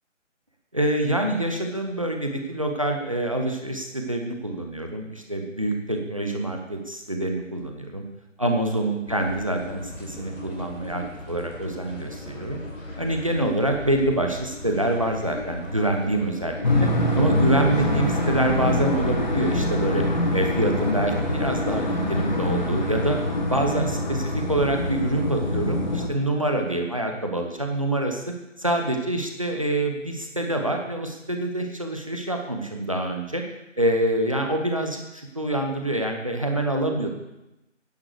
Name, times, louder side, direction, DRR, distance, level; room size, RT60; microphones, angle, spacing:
voice 1, 0.7-8.0 8.4-12.6 13.0-16.6 17.2-20.1 20.3-23.2 23.5-28.2 28.6-33.4 33.8-37.1, right 1 dB, 25° right, 3 dB, 1.0 m, -26 dB
sound 1, 9.1-19.0, left 2 dB, 70° left, 4.8 m, -38 dB
sound 2, 16.6-26.1, left 1 dB, 35° left, 1.6 m, -25 dB
13.0 x 10.5 x 4.8 m, 0.93 s
figure-of-eight pair, 160°, 39 cm